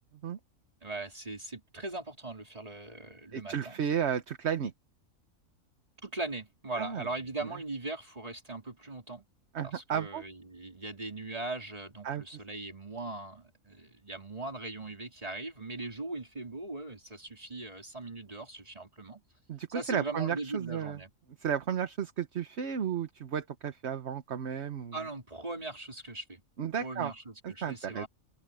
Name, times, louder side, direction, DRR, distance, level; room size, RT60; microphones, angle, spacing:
voice 1, 0.8-3.8 6.0-9.2 9.6-19.2 19.7-21.1 24.9-26.4 26.8-28.1, right 2 dB, 25° right, 3.7 m, -40 dB
voice 2, 3.3-4.7 6.8-7.1 9.5-10.2 12.0-12.2 19.5-21.0 21.4-25.0 26.6-27.1 27.4-28.1, right 8 dB, 55° right, 1.2 m, -33 dB
omnidirectional pair, 1.4 m